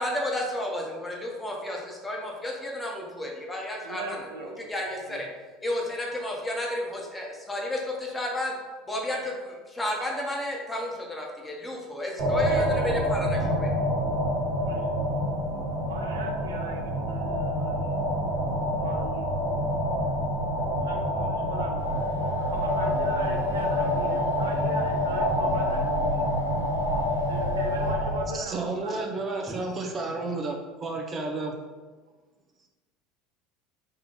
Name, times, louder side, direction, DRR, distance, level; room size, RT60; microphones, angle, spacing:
voice 1, 0.0-5.3 5.6-8.5 8.9-13.7 29.5-29.6, left 1 dB, 15° left, -1 dB, 1.1 m, -32 dB
voice 2, 3.8-4.7 5.1-5.2 12.3-13.0 14.7-14.9 15.9-17.9 18.8-19.3 20.8-22.0 22.5-26.2 27.2-29.0, right 3 dB, 80° right, 2 dB, 0.5 m, -39 dB
sound 1, 12.2-28.3, equal, 55° right, 1.0 m, -27 dB
sound 2, 21.8-27.9, left 1 dB, 90° left, 0.4 m, -43 dB
voice 3, 28.3-31.5, right 3 dB, 30° right, 2 dB, 0.6 m, -31 dB
3.7 x 2.6 x 4.1 m, 1.3 s
hypercardioid pair, 70°, 0 cm